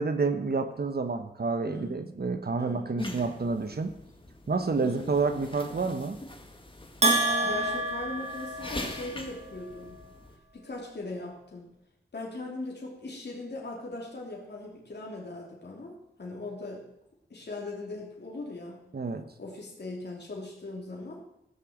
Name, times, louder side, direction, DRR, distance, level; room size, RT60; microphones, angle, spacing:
voice 1, 0.0-3.9 4.5-6.2 18.9-19.2, right 4 dB, 60° right, 8 dB, 1.2 m, -29 dB
voice 2, 1.6-2.0 2.6-2.9 4.8-5.1 7.4-10.0 10.5-11.7 12.1-16.9 17.3-18.8 19.4-21.2, left 2 dB, 65° left, -3 dB, 3.1 m, -39 dB
sound 1, 3.0-10.4, left 2 dB, 25° left, 1.8 m, -43 dB
Bell, 7.0-9.2, right 2 dB, 35° right, 1.8 m, -27 dB
15.5 x 6.8 x 7.4 m, 0.81 s
wide cardioid pair, 70°, 19 cm